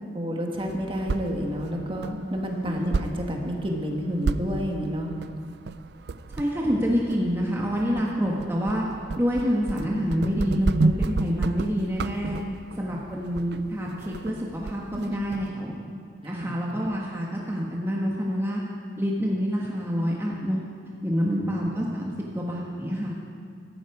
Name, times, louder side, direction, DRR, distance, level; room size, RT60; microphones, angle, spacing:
voice 1, 0.1-5.1 12.4-12.5 16.2-16.6 21.2-21.4, equal, 30° right, 1 dB, 1.7 m, -29 dB
sound 1, 0.6-15.5, right 3 dB, 65° right, 0.5 m, -32 dB
voice 2, 6.3-8.8 9.2-12.4 12.8-15.8 16.2-18.6 19.0-20.6 21.0-23.1, equal, 15° right, -3 dB, 1.4 m, -27 dB
16.5 x 13.5 x 4.9 m, 2.2 s
head